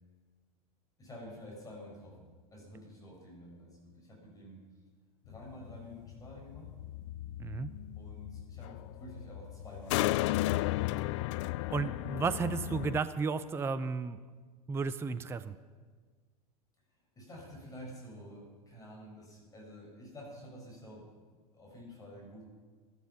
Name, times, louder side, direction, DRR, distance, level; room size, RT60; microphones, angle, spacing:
voice 1, 1.0-4.8 5.3-6.7 7.9-10.6 16.9-21.1 21.3-22.4, equal, 20° left, -3 dB, 5.9 m, -50 dB
sound 1, 5.3-13.0, left 17 dB, 50° left, 0.5 m, -35 dB
voice 2, 7.4-7.7 11.7-14.2 14.7-15.6, right 5 dB, 10° right, 14 dB, 0.5 m, -33 dB
16.5 x 12.5 x 5.8 m, 1.5 s
figure-of-eight pair, 85°, 20 cm